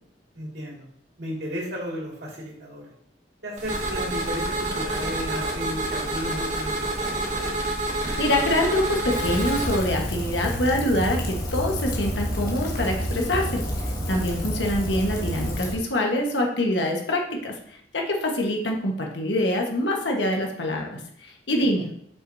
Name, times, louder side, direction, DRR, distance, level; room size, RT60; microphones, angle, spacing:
voice 1, 0.3-0.9 1.2-2.9 3.4-7.4 14.3-14.6 21.6-21.7, equal, 65° right, -3 dB, 2.3 m, -34 dB
sound 1, 3.6-9.8, right 1 dB, 40° right, 1.8 m, -28 dB
voice 2, 8.2-13.6 14.1-17.5 17.9-21.9, left 1 dB, 80° left, 1 dB, 1.3 m, -25 dB
Rain, 9.1-15.7, equal, 50° left, 1.4 m, -29 dB
7.9 x 6.1 x 2.7 m, 0.69 s
head